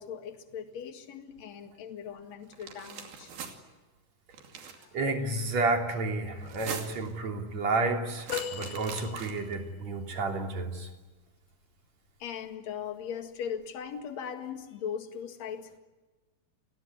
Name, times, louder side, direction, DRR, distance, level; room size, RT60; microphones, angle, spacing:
voice 1, 0.0-3.3 4.8-4.9 12.2-15.8, left 8 dB, 50° left, 6 dB, 2.7 m, -39 dB
sound 1, 2.5-3.5 4.3-4.9 6.4-7.1 8.2-9.5, right 6 dB, 65° right, 4.2 m, -41 dB
voice 2, 4.9-10.9, right 3 dB, 45° right, 2 dB, 4.0 m, -31 dB
sound 2, 8.3-9.7 12.1-12.3 13.6-13.7, left 9 dB, 70° left, 2.8 m, -38 dB
29.5 x 20.0 x 9.6 m, 1.2 s
omnidirectional pair, 4.7 m